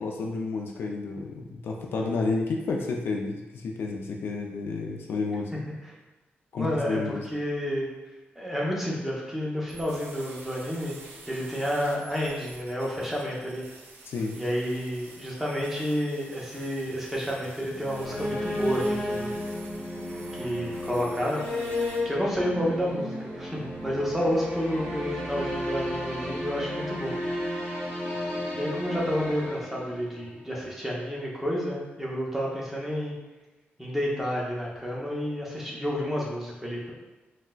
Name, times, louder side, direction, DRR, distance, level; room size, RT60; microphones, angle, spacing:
voice 1, 0.0-5.5 6.5-7.3 14.1-14.4, left 3 dB, 70° left, 1 dB, 0.4 m, -31 dB
voice 2, 6.6-7.9 8.4-11.0 11.3-13.6 14.3-19.3 20.3-21.5 21.7-27.1 28.5-33.1 33.8-36.9, equal, 5° right, -4 dB, 0.7 m, -30 dB
sound 1, 9.7-22.0, right 3 dB, 65° right, 0.5 m, -49 dB
sound 2, 17.6-30.4, left 1 dB, 15° left, 1.3 m, -33 dB
sound 3, 22.3-27.5, right 1 dB, 30° right, 1.0 m, -43 dB
3.7 x 2.1 x 2.2 m, 1.2 s
wide cardioid pair, 130°, 4 cm